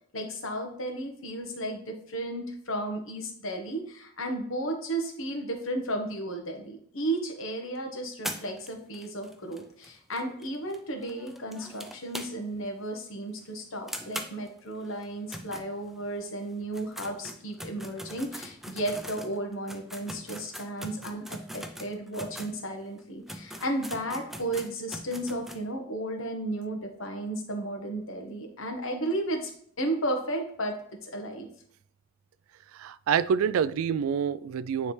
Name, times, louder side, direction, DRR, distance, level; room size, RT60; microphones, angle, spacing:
voice 1, 0.1-29.5 29.8-30.8 31.0-31.5, right 1 dB, 70° left, 1.2 m, -34 dB
sound 1, 8.2-12.7 13.0-13.1 13.4-13.5 13.9-16.2 16.6-22.5 23.0-23.1 23.3-25.6, equal, ahead, 0.4 m, -41 dB
voice 2, 32.7-34.9, right 7 dB, 80° right, 0.3 m, -27 dB
9.6 x 3.3 x 3.2 m
head